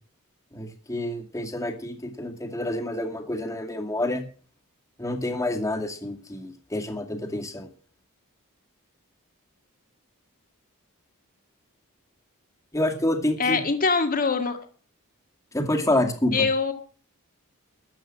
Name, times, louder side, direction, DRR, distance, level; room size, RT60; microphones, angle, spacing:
voice 1, 0.5-4.2 5.0-7.7 12.7-13.6 15.5-16.3, left 1 dB, 15° left, 3 dB, 2.2 m, -28 dB
voice 2, 13.4-14.6 16.3-16.7, left 4 dB, 40° left, 6 dB, 1.8 m, -23 dB
13.5 x 8.2 x 7.6 m, 0.43 s
head